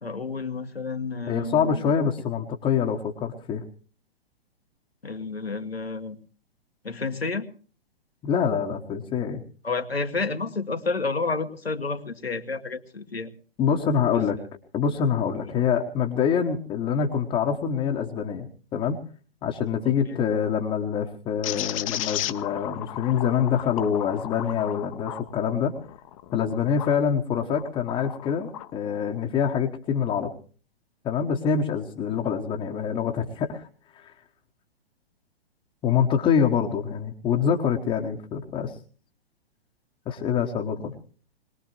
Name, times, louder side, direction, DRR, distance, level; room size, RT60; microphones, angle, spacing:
voice 1, 0.0-1.9 5.0-6.2 6.8-7.5 9.6-13.3 14.1-14.2 15.5-15.6 19.8-20.2, left 4 dB, 80° left, 7 dB, 1.7 m, -30 dB
voice 2, 1.3-3.6 8.2-9.4 13.6-14.4 14.7-18.5 18.7-19.0 19.4-25.8 26.3-30.3 31.0-33.7 34.0-34.1 35.8-38.7 40.1-41.0, left 7 dB, 15° left, 0 dB, 1.2 m, -25 dB
sound 1, 21.4-27.0 27.5-28.7, left 13 dB, 35° left, 0.9 m, -35 dB
22.0 x 20.0 x 3.1 m, 0.41 s
figure-of-eight pair, 120°, 30 cm